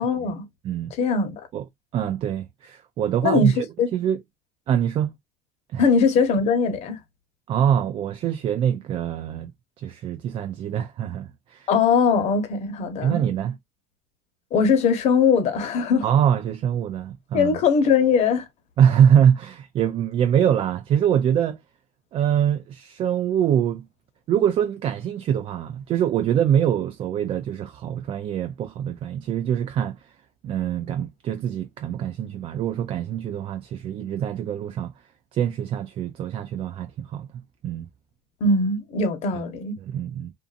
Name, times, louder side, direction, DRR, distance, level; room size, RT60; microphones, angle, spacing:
voice 1, 0.0-0.5 1.0-1.4 3.2-3.5 3.8-3.9 5.8-7.0 11.7-13.2 14.5-16.1 17.3-18.4 38.4-39.8, left 5 dB, 55° left, 1.1 m, -20 dB
voice 2, 1.9-3.7 3.9-4.2 4.7-5.1 5.7-5.9 7.5-9.5 9.8-11.7 13.0-13.6 16.0-17.6 18.8-21.6 22.1-23.8 24.3-30.0 30.4-34.9 35.3-37.3 37.6-37.9 39.3-39.4 39.8-40.3, right 9 dB, 40° right, 0.4 m, -24 dB
2.6 x 2.5 x 2.4 m
supercardioid pair, 105°, 14 cm